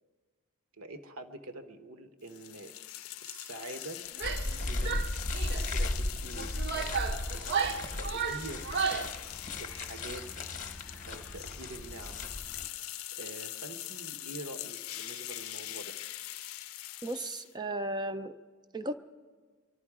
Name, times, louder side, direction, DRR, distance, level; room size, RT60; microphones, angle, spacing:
voice 1, 0.8-2.7 3.2-4.0 4.3-5.1 5.5-7.0 7.3-8.8 9.6-10.6 11.1-12.2 13.1-16.0, right 2 dB, 70° right, 7 dB, 1.1 m, -46 dB
sound 1, 2.3-17.5, left 14 dB, 70° left, 0.5 m, -43 dB
Female speech woman speaking / Yell, 4.1-4.6 4.8-5.7 6.3-9.2, right 5 dB, 50° right, 0.7 m, -33 dB
sound 2, 4.2-12.7, left 1 dB, 35° left, 0.9 m, -36 dB
voice 2, 17.0-18.4 18.7-18.9, right 1 dB, 20° right, 10 dB, 0.4 m, -35 dB
23.5 x 12.0 x 4.8 m, 1.5 s
head